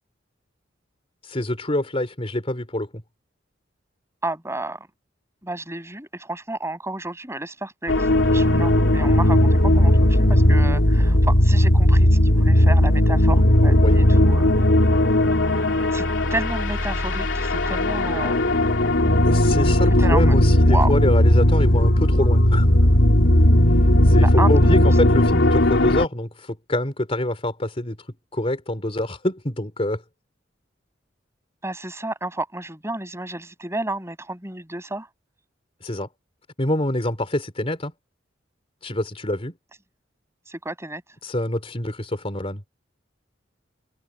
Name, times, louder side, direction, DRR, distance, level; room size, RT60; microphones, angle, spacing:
voice 1, 1.2-2.9 13.8-14.0 19.2-22.7 24.0-28.0 28.3-30.0 35.8-36.1 36.6-37.9 38.8-39.5 41.2-42.6, left 1 dB, 30° left, 3.4 m, -26 dB
voice 2, 4.2-4.8 5.4-8.1 8.3-14.7 15.9-16.1 16.3-18.6 20.0-20.4 20.6-20.9 24.2-24.8 31.6-35.1 40.5-41.0, right 2 dB, 15° right, 6.9 m, -31 dB
sound 1, 7.9-26.1, left 1 dB, 75° left, 3.0 m, -17 dB
head